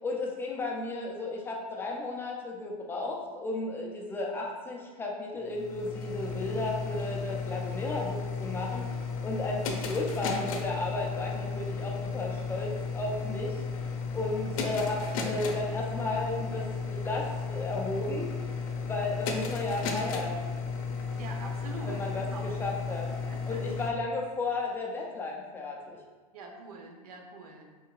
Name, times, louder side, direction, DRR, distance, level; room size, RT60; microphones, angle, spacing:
voice 1, 0.0-8.9 9.2-13.6 14.1-18.3 18.9-20.4 21.8-23.1 23.5-26.0, left 2 dB, 10° left, -1 dB, 0.3 m, -34 dB
sound 1, 5.4-23.9, left 5 dB, 65° left, 0.8 m, -34 dB
voice 2, 21.2-22.4 23.0-23.6 26.3-27.7, right 3 dB, 80° right, 2 dB, 0.9 m, -44 dB
4.7 x 4.4 x 2.3 m, 1.4 s
supercardioid pair, 145°, 19 cm